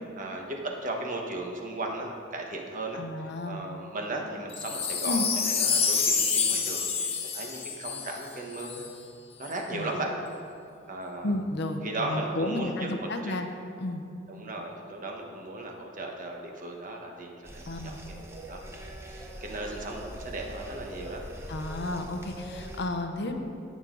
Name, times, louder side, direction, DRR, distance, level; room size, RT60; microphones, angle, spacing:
voice 1, 0.2-8.8 9.4-10.1 10.9-11.3 11.8-13.3 14.3-21.2, right 2 dB, 45° right, 1 dB, 1.3 m, -36 dB
voice 2, 2.9-3.6 5.1-5.2 9.7-9.9 11.2-13.5 13.8-14.0 17.7-18.0 21.5-23.5, left 1 dB, 60° left, 6 dB, 0.8 m, -32 dB
Wind chime, 4.5-8.9 9.4-9.5, left 6 dB, 30° left, 1.0 m, -28 dB
sound 1, 17.4-22.8, right 1 dB, 15° right, 0.9 m, -42 dB
17.5 x 6.3 x 3.9 m, 2.5 s
head